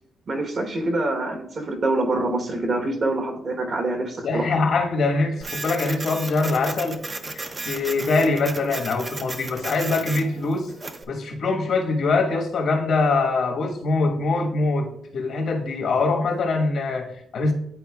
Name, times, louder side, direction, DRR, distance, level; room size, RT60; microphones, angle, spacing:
voice 1, 0.3-4.6, right 2 dB, 45° right, 1.2 m, -25 dB
voice 2, 4.2-7.0 7.2-10.7 11.1-17.5, left 3 dB, 65° left, 1.3 m, -23 dB
Printer, 5.4-11.0, right 2 dB, 25° right, 0.6 m, -35 dB
11.0 x 4.1 x 2.4 m
cardioid pair, 90°, 0 cm